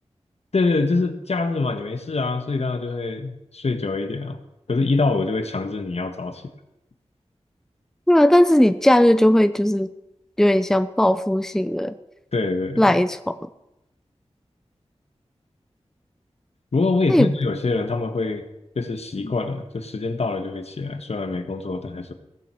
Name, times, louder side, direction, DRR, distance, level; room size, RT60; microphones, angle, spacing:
voice 1, 0.5-4.4 4.7-6.4 12.3-13.0 16.7-18.4 18.7-22.1, left 3 dB, 70° left, 7 dB, 1.5 m, -25 dB
voice 2, 8.1-9.9 10.4-11.9 12.8-13.3 17.1-17.3, left 1 dB, 5° left, 12 dB, 0.6 m, -17 dB
16.0 x 7.5 x 7.8 m, 0.92 s
wide cardioid pair, 75°, 11 cm